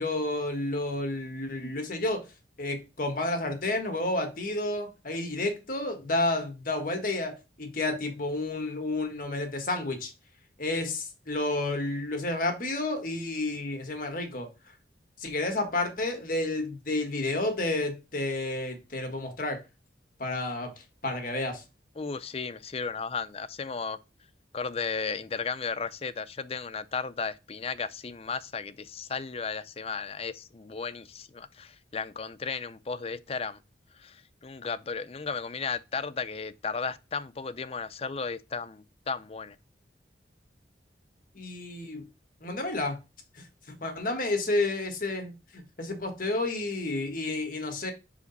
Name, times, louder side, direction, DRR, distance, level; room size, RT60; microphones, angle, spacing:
voice 1, 0.0-2.3 2.6-10.1 10.6-14.5 15.2-19.6 20.2-21.6 41.3-42.1 42.4-43.0 43.4-43.5 43.8-47.9, left 2 dB, 50° left, 1.6 m, -31 dB
voice 2, 22.0-24.0 24.5-33.6 34.0-39.6, left 5 dB, 35° left, 0.5 m, -35 dB
5.2 x 5.0 x 4.0 m
head